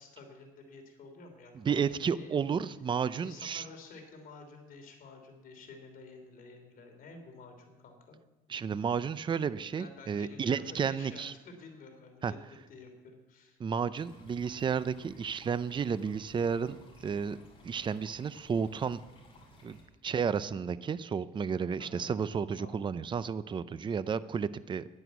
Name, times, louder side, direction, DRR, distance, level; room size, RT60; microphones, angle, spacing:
voice 1, 0.0-2.4 3.2-8.2 9.8-13.6 21.8-22.1 22.6-22.9, left 3 dB, 55° left, 4 dB, 3.2 m, -51 dB
voice 2, 1.7-3.6 8.5-11.3 12.2-12.3 13.6-16.8 17.0-17.4 17.6-19.0 19.6-19.8 20.0-24.9, right 6 dB, 30° right, 15 dB, 0.5 m, -32 dB
sound 1, 14.0-19.8, left 1 dB, 30° left, 5.2 m, -57 dB
11.0 x 11.0 x 8.2 m, 1.1 s
cardioid pair, 110°, 17 cm